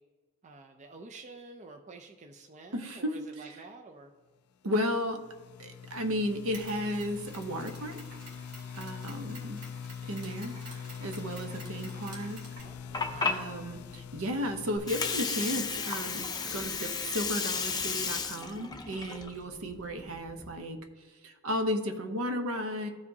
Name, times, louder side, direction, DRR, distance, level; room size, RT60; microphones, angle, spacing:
voice 1, 0.4-4.1 12.6-13.7 22.5-22.7, right 3 dB, 30° right, 4 dB, 0.4 m, -49 dB
voice 2, 2.7-3.1 3.4-3.6 4.6-5.2 5.6-8.0 8.7-9.6 10.0-12.4 13.0-20.8 21.2-22.9, equal, 65° right, 6 dB, 0.8 m, -34 dB
sound 1, 4.8-16.6, left 7 dB, 80° left, 0.3 m, -44 dB
Mechanisms, 6.5-14.8, right 2 dB, 85° right, 2.0 m, -51 dB
Water, 12.6-20.5, left 5 dB, 20° left, 0.5 m, -34 dB
14.0 x 4.9 x 2.7 m, 1.4 s
head